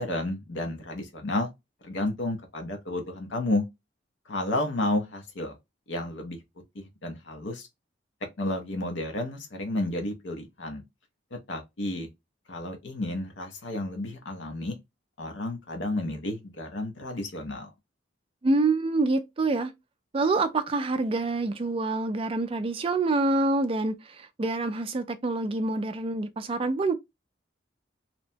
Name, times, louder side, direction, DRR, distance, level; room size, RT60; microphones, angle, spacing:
voice 1, 0.0-1.5 1.8-3.7 4.3-5.6 5.9-6.4 6.7-7.7 8.4-10.8 11.3-12.1 12.5-14.8 15.2-17.7, left 2 dB, 75° left, 0.6 m, -31 dB
voice 2, 18.4-19.7 20.1-26.9, right 3 dB, 30° right, 0.3 m, -26 dB
2.8 x 2.1 x 2.6 m
head